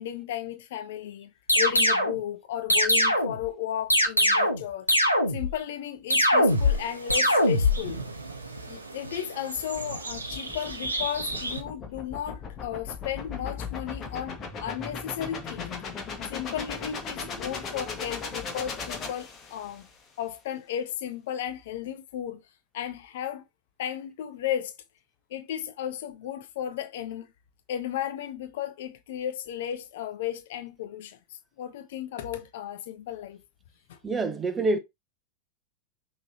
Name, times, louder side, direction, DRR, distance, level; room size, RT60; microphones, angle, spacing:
voice 1, 0.0-4.9 5.3-8.0 8.7-15.8 16.3-19.9 20.2-22.4 22.7-23.4 23.8-24.7 25.3-27.3 27.7-31.2 31.6-33.4 33.9-34.0, left 10 dB, 55° left, 0.6 m, -34 dB
sound 1, 1.5-2.2 2.7-3.4 3.9-4.6 4.9-5.5 6.1-6.8 7.1-7.8, left 1 dB, 90° left, 0.9 m, -21 dB
sound 2, 6.5-11.6, right 2 dB, 80° right, 0.8 m, -37 dB
sound 3, 9.5-19.9, left 5 dB, 25° left, 1.4 m, -37 dB
voice 2, 34.0-34.8, right 2 dB, 15° right, 0.9 m, -26 dB
5.9 x 3.1 x 2.8 m
figure-of-eight pair, 90°, 0 cm